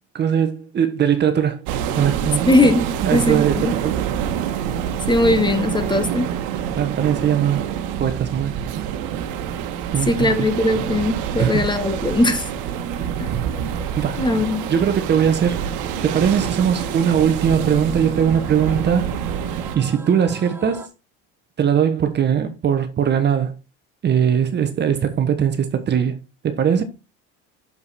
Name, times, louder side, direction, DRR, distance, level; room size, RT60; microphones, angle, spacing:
voice 1, 0.1-1.6 2.0-2.5 3.0-4.1 6.7-7.7 8.0-8.5 9.9-10.5 11.4-11.6 13.3-13.4 14.0-14.2 14.7-15.7 16.0-19.1 19.7-20.9 21.6-23.5 24.0-26.2 26.4-26.8, right 8 dB, 35° right, 1.1 m, -20 dB
sound 1, 1.7-19.8, right 9 dB, 75° right, 1.3 m, -26 dB
voice 2, 2.5-3.7 5.1-6.3 10.1-12.4 13.2-13.3 14.2-14.7, left 2 dB, 15° left, 1.3 m, -19 dB
sound 2, 12.1-20.9, left 1 dB, 5° right, 1.3 m, -40 dB
6.9 x 5.3 x 4.2 m
supercardioid pair, 110°, 31 cm